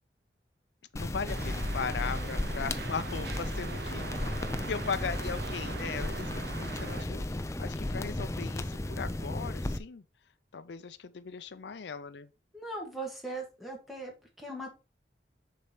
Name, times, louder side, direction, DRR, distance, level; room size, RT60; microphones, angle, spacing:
voice 1, 0.9-4.3 4.7-6.3 6.6-10.0 10.5-12.3, left 5 dB, 80° left, 0.5 m, -38 dB
sound 1, 1.0-9.8, left 1 dB, 15° left, 0.4 m, -34 dB
sound 2, 1.3-7.0, right 6 dB, 65° right, 0.4 m, -42 dB
voice 2, 12.5-14.7, right 2 dB, ahead, 1.8 m, -39 dB
6.6 x 4.2 x 4.8 m
head